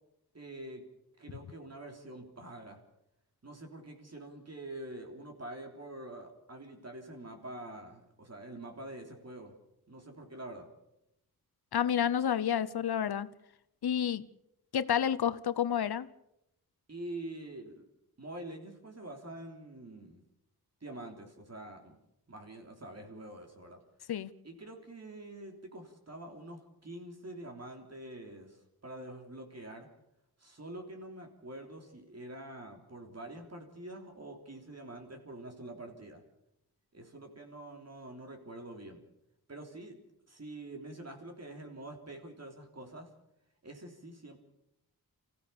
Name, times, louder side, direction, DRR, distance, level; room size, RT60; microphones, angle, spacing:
voice 1, 0.3-0.8 1.2-2.8 3.4-9.5 9.9-10.7 16.9-17.8 18.2-20.2 20.8-22.0 22.3-23.8 24.4-29.9 30.4-36.2 36.9-39.0 39.5-40.0 40.3-43.1 43.6-44.4, right 1 dB, 45° right, 3.3 m, -46 dB
voice 2, 11.7-13.3 13.8-14.2 14.7-16.1 24.1-24.3, left 9 dB, 90° left, 0.8 m, -29 dB
26.0 x 15.5 x 6.9 m
wide cardioid pair, 100°, 37 cm